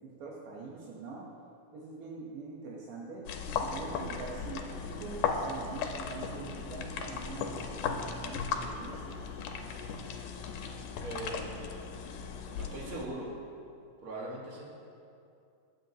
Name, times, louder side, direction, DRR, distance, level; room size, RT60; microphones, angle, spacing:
voice 1, 0.0-1.3 1.7-9.2, right 4 dB, 80° right, -4 dB, 2.7 m, -44 dB
sound 1, 3.3-13.1, left 6 dB, 90° left, 2.4 m, -37 dB
voice 2, 11.0-11.7 12.5-13.3 14.0-14.7, right 1 dB, 40° right, -3 dB, 1.4 m, -40 dB
21.5 x 8.0 x 2.9 m, 2.5 s
omnidirectional pair, 3.8 m